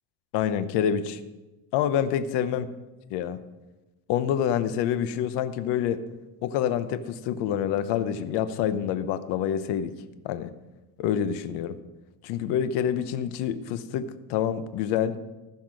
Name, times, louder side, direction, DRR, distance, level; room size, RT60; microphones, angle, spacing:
voice 1, 0.3-1.2 1.7-2.7 3.1-3.4 4.1-6.0 6.4-9.9 10.2-10.5 11.0-11.7 12.2-15.2, left 9 dB, 60° left, 12 dB, 0.9 m, -27 dB
15.0 x 5.8 x 6.3 m, 1.1 s
cardioid pair, 140°, 47 cm